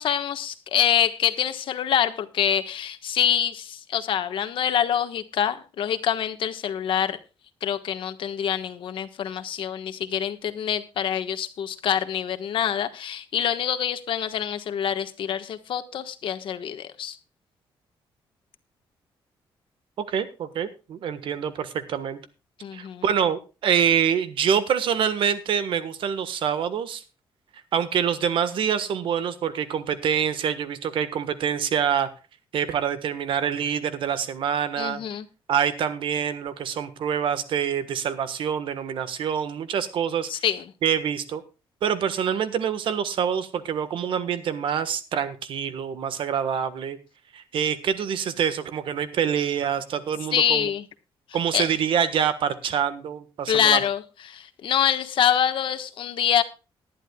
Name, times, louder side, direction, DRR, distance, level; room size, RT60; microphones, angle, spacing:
voice 1, 0.0-7.2 7.6-17.2 22.6-23.0 34.8-35.3 40.3-40.6 50.3-50.8 51.5-51.6 53.5-56.4, left 9 dB, 65° left, 1.3 m, -25 dB
voice 2, 20.0-22.2 22.7-27.0 27.7-32.1 32.5-35.0 35.5-40.3 40.8-41.4 41.8-47.0 47.3-50.7 51.3-53.8, right 8 dB, 65° right, 1.4 m, -26 dB
19.0 x 11.5 x 2.3 m
cardioid pair, 150°, 9 cm